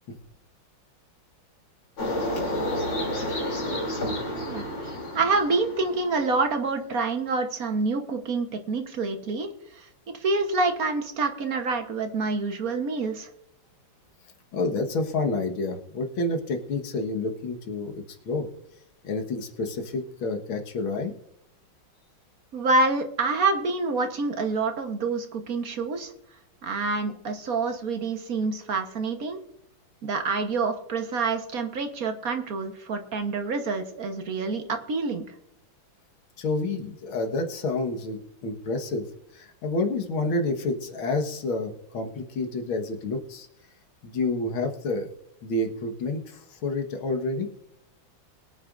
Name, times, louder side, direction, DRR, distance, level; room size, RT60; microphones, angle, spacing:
sound 1, 2.0-6.3, left 1 dB, 65° left, 3.8 m, -30 dB
voice 1, 4.5-13.3 22.5-26.1 26.6-29.4 30.0-35.2, right 3 dB, 50° right, 6 dB, 1.4 m, -27 dB
voice 2, 14.5-18.5 19.0-21.1 36.4-39.1 39.3-43.5 44.0-45.1 45.4-47.5, left 2 dB, 85° left, 4 dB, 2.2 m, -29 dB
22.5 x 9.3 x 2.5 m, 0.76 s
omnidirectional pair, 2.2 m